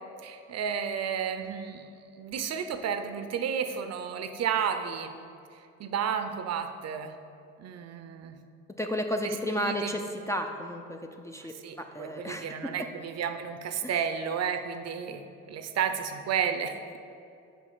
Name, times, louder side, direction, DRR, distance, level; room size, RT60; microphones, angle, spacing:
voice 1, 0.2-1.9 2.2-5.1 5.8-7.2 7.6-8.4 9.2-9.9 11.6-17.0, right 7 dB, 55° right, 7 dB, 0.6 m, -32 dB
voice 2, 8.8-12.7 13.8-13.9, equal, 10° left, 4 dB, 0.4 m, -33 dB
5.1 x 5.1 x 5.5 m, 2.5 s
cardioid pair, 90°, 30 cm